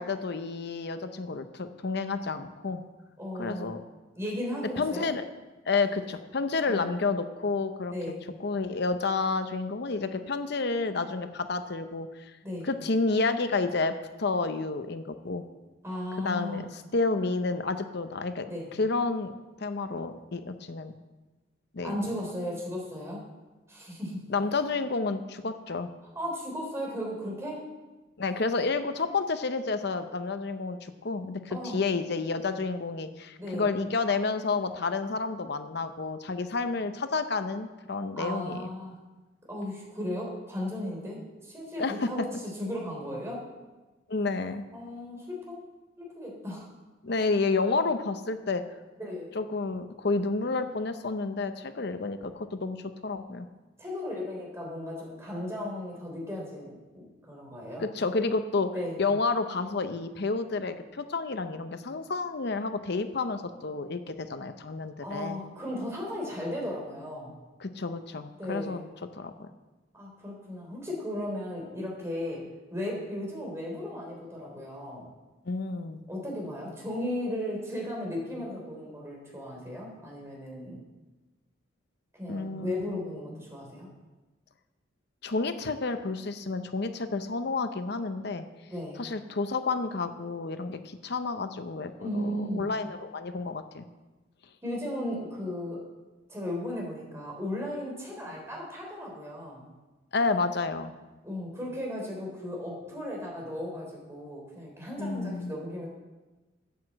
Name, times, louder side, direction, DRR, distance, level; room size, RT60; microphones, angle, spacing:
voice 1, 0.0-2.8 3.4-3.8 4.8-5.2 5.7-7.9 8.4-12.3 12.6-15.4 16.2-18.5 18.8-19.3 19.6-20.9 21.7-22.1 24.3-25.9 28.2-38.7 41.8-42.3 44.1-44.6 47.0-48.6 49.3-53.5 57.9-58.7 59.0-65.4 67.6-68.8 69.1-69.5 75.5-76.0 82.3-83.0 85.2-88.4 89.0-93.8 100.1-100.9 105.0-105.5, left 3 dB, 55° left, 9 dB, 0.7 m, -30 dB
voice 2, 3.2-3.7 4.1-5.1 6.7-6.9 7.9-8.2 12.4-12.7 15.8-16.7 18.4-18.7 21.8-23.2 23.7-24.2 26.2-27.7 31.5-31.8 33.4-33.7 38.2-39.0 39.5-42.3 42.6-43.4 44.7-45.6 46.0-46.7 49.0-49.3 53.8-57.8 58.7-59.0 65.0-67.4 68.4-68.8 70.0-72.4 72.7-75.1 76.1-80.8 82.1-83.9 88.7-89.0 92.0-92.7 94.6-95.8 96.3-99.7 101.2-105.9, left 1 dB, 15° right, -2 dB, 3.5 m, -36 dB
9.4 x 8.2 x 7.5 m, 1.2 s
head